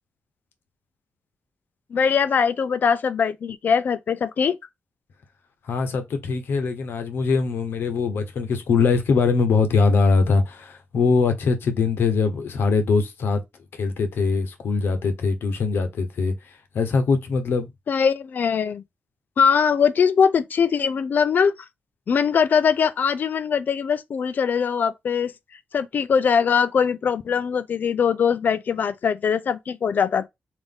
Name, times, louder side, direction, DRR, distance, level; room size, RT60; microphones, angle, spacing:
voice 1, 1.9-4.6 17.9-18.8 19.4-21.5 22.1-25.3 25.7-30.3, left 6 dB, 50° left, 0.4 m, -21 dB
voice 2, 5.7-13.4 13.7-16.3 16.7-17.7, left 4 dB, 70° left, 0.8 m, -22 dB
3.8 x 2.5 x 3.5 m
wide cardioid pair, 145°, 4 cm